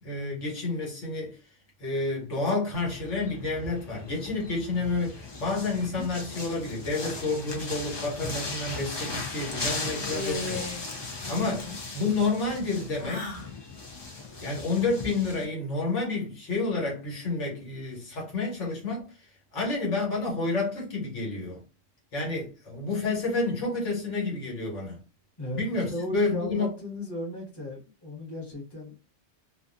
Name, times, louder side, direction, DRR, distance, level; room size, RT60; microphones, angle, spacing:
voice 1, 0.0-1.4 1.8-10.7 11.3-13.4 14.4-19.2 19.5-21.6 22.1-25.0 25.5-26.7, left 3 dB, 70° left, 1.5 m, -30 dB
sound 1, 2.7-15.4, left 3 dB, 35° left, 0.4 m, -37 dB
sound 2, 10.1-10.9 11.2-11.8 13.0-13.5, left 3 dB, 55° left, 0.8 m, -36 dB
voice 2, 25.9-28.9, left 1 dB, 20° left, 1.2 m, -35 dB
2.7 x 2.4 x 2.5 m
omnidirectional pair, 1.3 m